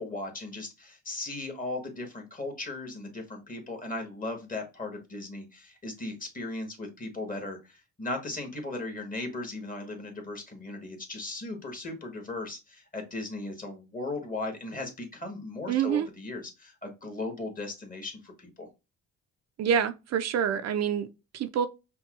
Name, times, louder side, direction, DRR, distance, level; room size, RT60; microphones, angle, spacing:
voice 1, 0.0-18.7, left 2 dB, 25° left, 1.4 m, -37 dB
voice 2, 15.7-16.1 19.6-21.1 21.3-21.7, right 8 dB, 60° right, 0.4 m, -26 dB
5.4 x 2.2 x 2.4 m
cardioid pair, 90°, 30 cm